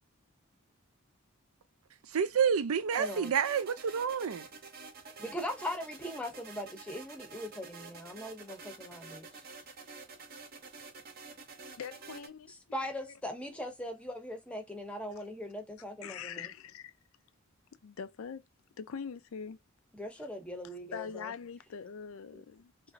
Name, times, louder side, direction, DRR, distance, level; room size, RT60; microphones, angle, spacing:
voice 1, 2.1-4.4, right 7 dB, 90° right, 0.5 m, -29 dB
sound 1, 2.9-12.3, right 4 dB, 45° right, 0.7 m, -49 dB
voice 2, 3.0-3.3 5.2-9.4 12.7-16.5 19.9-21.3, left 1 dB, 5° left, 0.7 m, -40 dB
voice 3, 11.8-13.1 16.0-16.9 17.8-18.4 18.8-19.6 20.2-20.3 20.9-22.7, left 6 dB, 75° left, 0.4 m, -43 dB
3.0 x 2.6 x 2.5 m
head